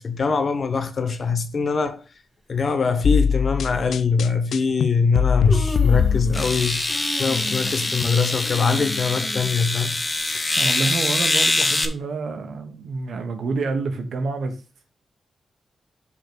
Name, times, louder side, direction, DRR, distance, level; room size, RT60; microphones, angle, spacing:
voice 1, 0.0-2.0 2.5-6.8 7.2-10.0, left 5 dB, 60° left, 1.0 m, -23 dB
Human voice, 1.7-1.9 2.9-3.0 3.6-3.8 4.8-4.9 5.2-6.6 6.9-10.4 10.8-10.9 11.8-11.9, right 1 dB, 10° right, 1.9 m, -35 dB
sound 1, 3.0-6.7, left 6 dB, 80° left, 0.3 m, -22 dB
sound 2, 5.5-5.6 6.3-11.9, left 2 dB, 30° left, 1.0 m, -24 dB
voice 2, 10.6-14.6, right 4 dB, 75° right, 1.2 m, -28 dB
5.3 x 4.1 x 6.0 m
cardioid pair, 55°, 0 cm